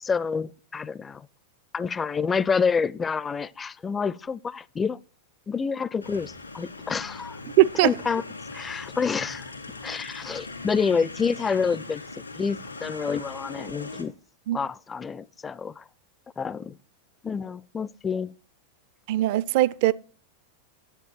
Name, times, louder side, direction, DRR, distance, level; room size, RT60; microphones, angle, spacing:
voice 1, 0.0-1.3 1.7-5.0 5.5-7.4 7.8-8.2 8.5-9.5 9.8-12.0 12.3-14.1 14.5-15.8 16.4-16.8 17.2-18.3, left 5 dB, 15° left, 0.4 m, -28 dB
sound 1, 6.0-14.0, left 3 dB, 85° left, 1.9 m, -40 dB
voice 2, 7.6-7.9 14.5-14.6 19.1-19.9, right 15 dB, 50° right, 0.4 m, -20 dB
10.5 x 7.9 x 4.3 m
figure-of-eight pair, 90°, 0 cm